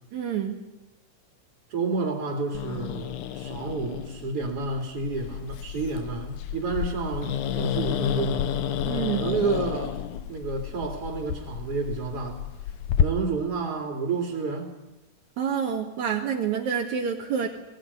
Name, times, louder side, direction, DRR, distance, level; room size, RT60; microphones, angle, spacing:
voice 1, 0.1-0.6 8.9-9.3 15.4-17.5, right 7 dB, 70° right, 2 dB, 3.2 m, -28 dB
voice 2, 1.7-8.4 9.2-10.0 10.3-12.4 13.0-14.7, right 4 dB, 50° right, 2 dB, 3.7 m, -30 dB
Growling, 2.5-13.0, left 9 dB, 85° left, 2.6 m, -31 dB
21.0 x 19.0 x 9.8 m, 0.98 s
omnidirectional pair, 3.4 m